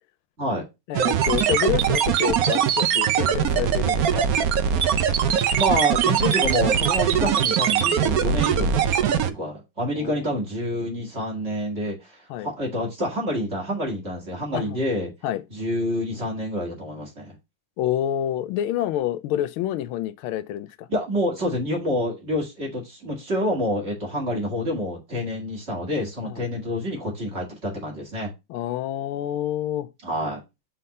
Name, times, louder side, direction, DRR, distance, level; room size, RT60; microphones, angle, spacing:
voice 1, 0.9-4.3 9.9-10.2 12.3-12.5 14.5-14.8 15.2-15.4 17.8-20.9 26.2-26.4 28.5-29.9, left 12 dB, 85° left, 1.5 m, -28 dB
sound 1, 0.9-9.3, right 8 dB, 75° right, 0.8 m, -21 dB
voice 2, 5.3-15.1 15.5-17.3 20.9-28.3 30.0-30.4, equal, 35° right, 2.4 m, -28 dB
5.8 x 3.6 x 5.2 m
omnidirectional pair, 2.3 m